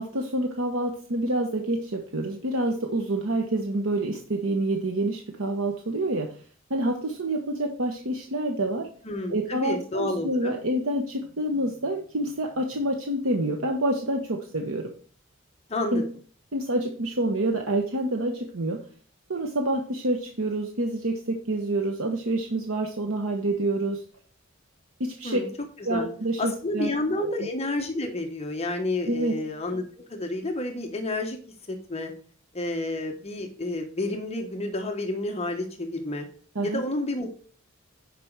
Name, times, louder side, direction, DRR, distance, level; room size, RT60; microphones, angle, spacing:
voice 1, 0.0-6.3 6.7-8.9 9.3-14.9 15.9-16.0 16.5-18.8 19.3-24.0 25.0-25.4 25.8-26.9 27.2-27.3 29.1-29.4 36.5-36.8, right 1 dB, 80° right, 3 dB, 1.1 m, -27 dB
voice 2, 9.0-10.5 15.7-16.0 25.2-25.5 25.9-26.1 26.4-29.8 30.1-31.4 31.7-32.1 32.5-36.3 36.6-37.4, left 2 dB, 30° left, 4 dB, 1.1 m, -30 dB
10.5 x 5.0 x 4.7 m, 0.43 s
head